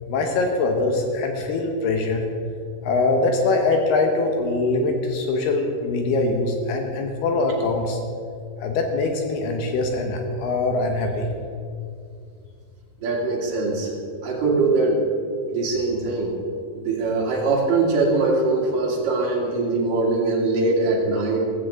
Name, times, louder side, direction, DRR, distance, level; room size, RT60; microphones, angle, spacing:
voice 1, 0.1-2.2 2.8-8.0 8.6-11.3, left 3 dB, 70° left, 3 dB, 2.8 m, -23 dB
voice 2, 13.0-13.9 14.2-15.1 15.5-16.3 16.7-21.4, right 3 dB, 55° right, -3 dB, 3.7 m, -22 dB
16.0 x 15.0 x 3.7 m, 2.4 s
omnidirectional pair, 5.3 m